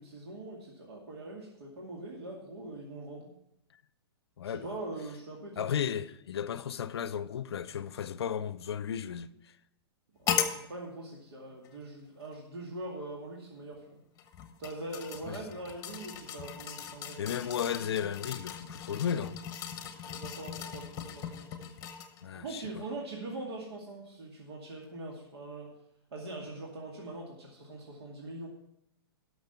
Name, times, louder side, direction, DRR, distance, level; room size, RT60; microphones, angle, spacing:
voice 1, 0.0-3.3 4.4-5.8 10.2-14.0 14.6-17.2 20.0-21.7 22.3-25.7 26.1-28.5, right 2 dB, 75° right, 2.4 m, -42 dB
voice 2, 4.4-4.7 5.6-9.6 15.3-15.4 17.2-19.4 22.2-22.9, left 8 dB, 80° left, 0.5 m, -34 dB
sound 1, 10.3-10.6 11.6-11.7 14.2-22.2 22.7-22.8, left 8 dB, 25° left, 1.2 m, -38 dB
12.0 x 6.4 x 5.8 m
hypercardioid pair, 135°, 13 cm